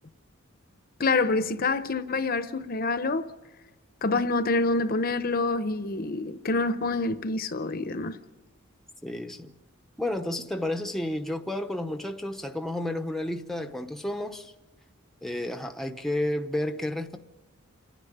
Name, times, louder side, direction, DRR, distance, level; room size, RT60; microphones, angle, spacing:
voice 1, 1.0-3.2 4.0-8.2, left 3 dB, 45° left, 0.8 m, -26 dB
voice 2, 9.0-9.5 10.0-14.5 15.2-17.2, left 1 dB, ahead, 0.8 m, -31 dB
28.5 x 10.0 x 9.9 m
head